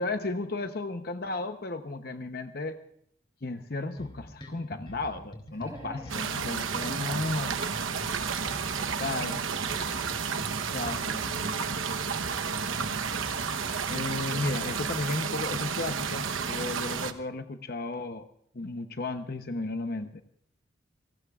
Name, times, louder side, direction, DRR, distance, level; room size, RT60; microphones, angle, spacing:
voice 1, 0.0-2.8 3.4-7.6 9.0-9.4 10.7-11.8 13.9-18.3 18.5-20.2, left 2 dB, 50° left, 7 dB, 0.8 m, -34 dB
sound 1, 4.0-13.6, equal, 25° left, 3.1 m, -45 dB
voice 2, 5.5-7.3 8.4-9.2, equal, 15° right, -1 dB, 6.3 m, -49 dB
sound 2, 6.1-17.1, right 6 dB, 90° right, 1.0 m, -31 dB
29.0 x 18.5 x 2.4 m, 0.68 s
head